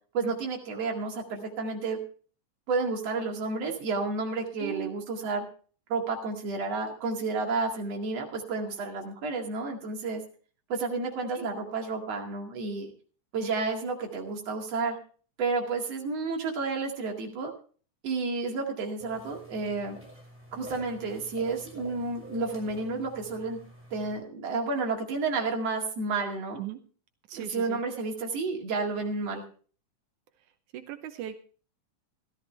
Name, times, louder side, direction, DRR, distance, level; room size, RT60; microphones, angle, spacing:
voice 1, 0.1-2.0 2.7-5.4 5.9-10.2 10.7-12.9 13.3-15.0 15.4-17.5 18.0-20.0 20.5-23.6 23.9-26.6 27.3-29.4, right 3 dB, 55° right, 2 dB, 3.2 m, -31 dB
voice 2, 4.6-4.9 11.3-11.5 26.6-26.8 27.3-27.8 30.7-31.4, right 12 dB, 80° right, 8 dB, 2.3 m, -38 dB
sound 1, 19.0-24.1, right 1 dB, 5° right, 6.0 m, -48 dB
15.5 x 13.5 x 3.3 m, 0.41 s
omnidirectional pair, 3.5 m